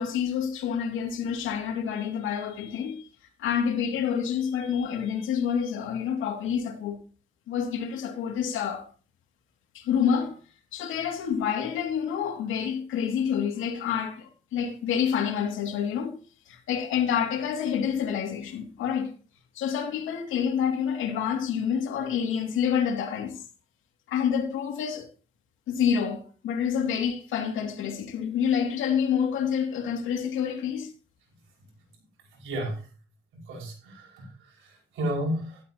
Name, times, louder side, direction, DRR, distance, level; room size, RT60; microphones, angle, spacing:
voice 1, 0.0-3.1 3.4-7.0 7.5-8.9 9.7-10.4 10.7-16.1 16.5-19.1 19.5-23.4 24.1-25.1 25.7-30.9, left 8 dB, 85° left, 2.5 m, -28 dB
voice 2, 32.3-32.8 33.3-35.6, equal, 85° right, 5.5 m, -33 dB
12.5 x 12.0 x 2.9 m
cardioid pair, 90°, 20 cm